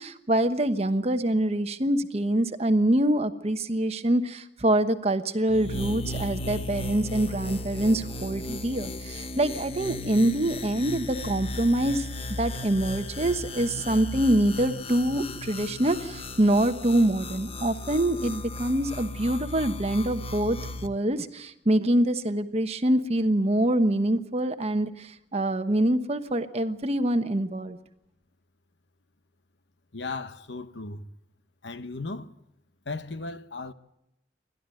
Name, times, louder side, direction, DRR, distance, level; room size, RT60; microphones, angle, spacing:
voice 1, 0.0-12.1 12.4-27.8, right 1 dB, 35° right, 1.2 m, -25 dB
sound 1, 5.5-20.9, left 1 dB, 35° left, 1.0 m, -36 dB
voice 2, 29.9-31.1 31.6-32.3 32.9-33.7, left 3 dB, 90° left, 1.1 m, -36 dB
29.0 x 12.5 x 9.1 m
head